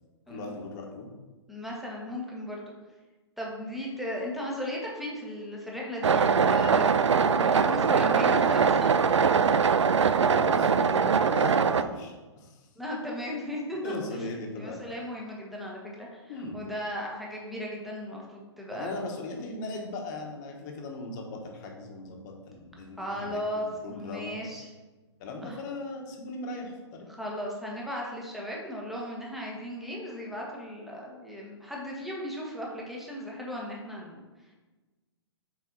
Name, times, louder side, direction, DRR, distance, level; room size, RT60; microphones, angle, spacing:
voice 1, 0.3-1.1 10.3-12.6 13.8-14.8 16.3-16.6 18.7-24.4 25.2-27.1, left 2 dB, 40° left, 2 dB, 1.4 m, -38 dB
voice 2, 1.5-2.7 3.4-9.0 10.0-10.3 12.7-13.9 14.5-18.9 23.0-23.7 23.9-24.6 25.4-25.6 27.1-34.2, equal, ahead, -3 dB, 1.3 m, -36 dB
sound 1, 6.0-11.8, right 6 dB, 90° right, 0.4 m, -22 dB
6.3 x 4.8 x 4.0 m, 1.2 s
hypercardioid pair, 125°, 15 cm